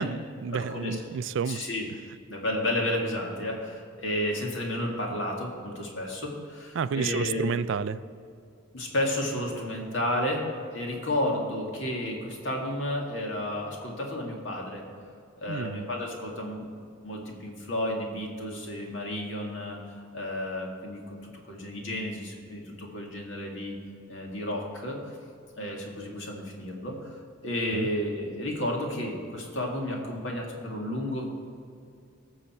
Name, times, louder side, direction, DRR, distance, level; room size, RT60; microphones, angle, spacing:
voice 1, 0.0-1.6 6.7-8.0 15.5-15.8 27.7-27.9, right 6 dB, 60° right, 15 dB, 0.3 m, -30 dB
voice 2, 0.5-1.0 1.5-1.9 2.3-7.5 8.7-10.5 10.7-14.8 15.4-16.6 17.0-23.7 24.1-25.2 25.6-27.1 27.4-31.3, left 1 dB, 65° left, 0 dB, 2.2 m, -32 dB
18.5 x 7.0 x 4.4 m, 2.3 s
head